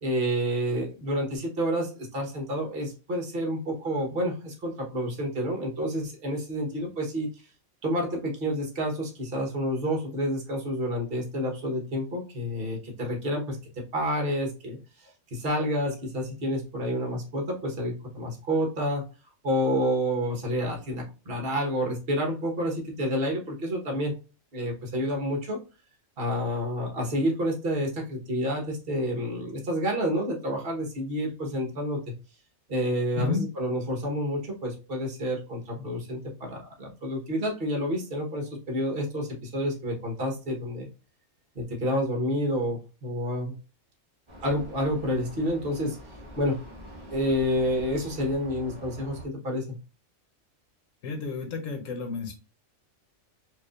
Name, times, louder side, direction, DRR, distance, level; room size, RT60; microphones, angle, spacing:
voice 1, 0.0-7.3 7.8-13.6 13.9-14.8 15.0-19.1 19.4-24.1 24.5-25.6 26.2-32.0 32.7-40.9 41.5-43.5 44.4-46.0 46.4-46.6 47.1-49.6, equal, 50° right, 1 dB, 1.3 m, -29 dB
Vehicle, 44.3-49.3, equal, 25° right, 0.9 m, -45 dB
voice 2, 51.0-52.3, left 4 dB, 85° left, 5 dB, 1.3 m, -31 dB
4.6 x 2.7 x 2.4 m, 0.31 s
omnidirectional pair, 1.3 m